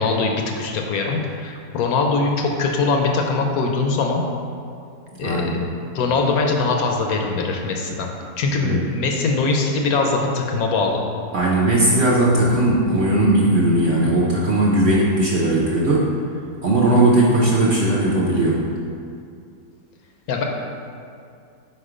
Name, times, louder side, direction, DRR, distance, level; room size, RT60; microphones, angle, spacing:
voice 1, 0.0-4.2 5.2-5.6 5.9-8.1 8.4-11.0 20.3-20.4, left 3 dB, 70° left, 1 dB, 1.0 m, -22 dB
voice 2, 5.2-5.5 8.6-8.8 11.3-16.1 16.6-18.6, right 1 dB, 55° right, -5 dB, 0.7 m, -18 dB
4.6 x 4.4 x 4.9 m, 2.4 s
omnidirectional pair, 1.7 m